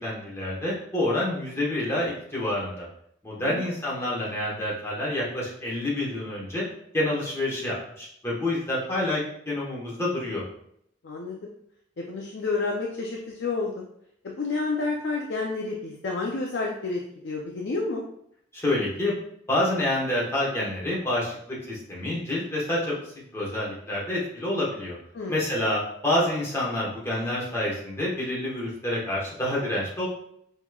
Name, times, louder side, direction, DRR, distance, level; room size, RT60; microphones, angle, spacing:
voice 1, 0.0-2.8 3.2-6.6 6.9-10.4 18.5-19.1 19.5-22.9 23.3-24.9 25.3-30.1, left 1 dB, 15° left, -6 dB, 1.2 m, -28 dB
voice 2, 11.0-11.5 12.0-13.7 14.2-18.0 25.1-25.5, left 3 dB, 60° left, -1 dB, 0.5 m, -30 dB
5.5 x 3.0 x 2.3 m, 0.71 s
head